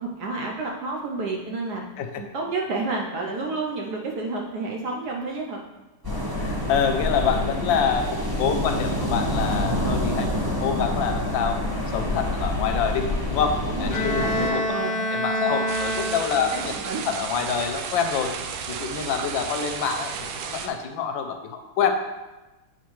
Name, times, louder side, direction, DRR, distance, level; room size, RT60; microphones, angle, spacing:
voice 1, 0.0-1.8 2.2-5.6 9.6-10.4 13.7-15.0 15.3-15.6 16.4-17.1, right 3 dB, 65° right, 0 dB, 1.1 m, -31 dB
sound 1, 6.0-14.5, left 1 dB, 15° right, 0.9 m, -27 dB
voice 2, 6.3-10.3 10.6-11.6 11.9-14.6 15.1-16.7 17.0-18.4 18.7-20.1 20.5-21.9, left 7 dB, 75° left, 5 dB, 1.3 m, -26 dB
Bowed string instrument, 13.9-16.6, equal, 30° left, 0.9 m, -27 dB
sound 2, 15.7-20.7, right 6 dB, 90° right, 1.4 m, -33 dB
8.1 x 4.5 x 3.1 m, 1.1 s
omnidirectional pair, 2.2 m